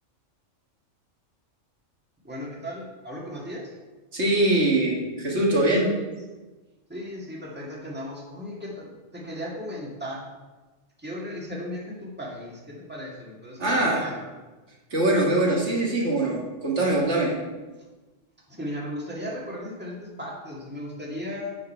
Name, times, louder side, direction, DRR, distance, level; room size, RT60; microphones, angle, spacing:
voice 1, 2.2-3.7 6.9-10.3 11.0-14.2 18.5-21.5, equal, 10° right, -4 dB, 1.8 m, -36 dB
voice 2, 4.1-5.9 13.6-14.0 14.9-17.4, right 1 dB, 65° right, -3 dB, 2.0 m, -22 dB
7.8 x 6.6 x 5.5 m, 1.2 s
omnidirectional pair, 1.3 m